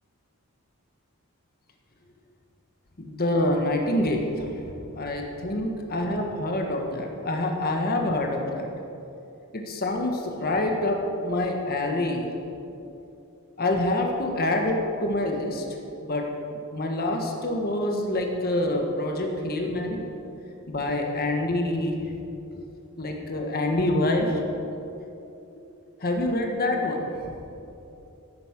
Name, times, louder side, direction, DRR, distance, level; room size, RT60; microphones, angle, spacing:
voice 1, 3.0-8.7 9.5-12.3 13.6-15.6 16.0-16.2 16.5-20.0 20.7-22.0 22.5-22.6 23.0-24.4 25.5-25.6 26.0-27.1, left 1 dB, 45° left, 2 dB, 1.4 m, -26 dB
14.5 x 8.4 x 6.0 m, 2.8 s
head